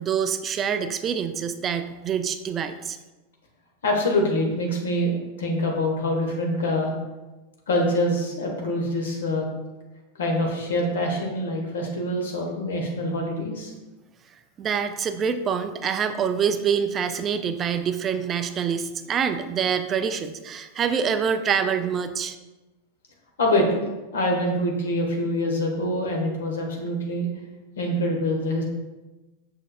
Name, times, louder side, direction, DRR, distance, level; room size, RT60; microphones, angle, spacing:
voice 1, 0.0-3.0 14.6-22.4, right 7 dB, 25° right, 9 dB, 0.4 m, -26 dB
voice 2, 3.8-5.1 5.4-6.9 7.7-9.5 10.2-13.7 23.4-23.8 24.1-27.3 27.8-28.6, left 1 dB, 65° left, 0 dB, 1.4 m, -25 dB
6.6 x 6.1 x 2.4 m, 1.1 s
figure-of-eight pair, 90°, 0 cm